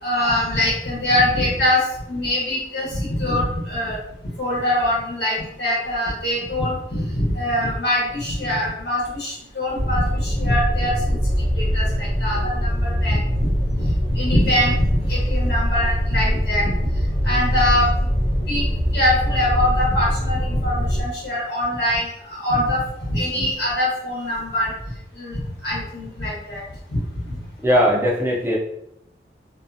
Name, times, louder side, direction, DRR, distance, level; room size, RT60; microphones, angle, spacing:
voice 1, 0.0-1.8 2.1-4.0 4.4-11.2 11.6-16.7 17.2-18.1 18.5-18.7 18.9-22.8 23.1-24.7 25.2-26.6 26.9-27.0 27.3-27.4, left 1 dB, 75° left, -6 dB, 1.0 m, -23 dB
sound 1, 9.8-21.0, equal, 50° left, 0.8 m, -22 dB
voice 2, 27.6-28.6, equal, 15° right, -2 dB, 0.4 m, -18 dB
2.5 x 2.3 x 2.5 m, 0.77 s
head